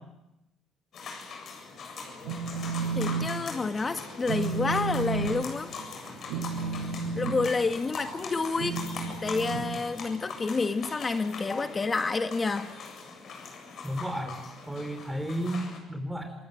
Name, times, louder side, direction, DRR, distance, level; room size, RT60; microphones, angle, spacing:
sound 1, 0.9-15.8, left 4 dB, 60° left, 7.5 m, -41 dB
Telephone, 2.0-3.3 3.6-3.9 4.2-10.4, right 5 dB, 85° right, 7.7 m, -33 dB
voice 1, 2.9-5.7 7.2-8.8 9.2-12.7, left 4 dB, 30° left, 8 dB, 1.7 m, -29 dB
voice 2, 13.8-14.4 14.7-16.3, right 1 dB, 10° right, 5 dB, 5.4 m, -33 dB
28.0 x 20.0 x 8.9 m, 0.93 s
supercardioid pair, 70°, 0 cm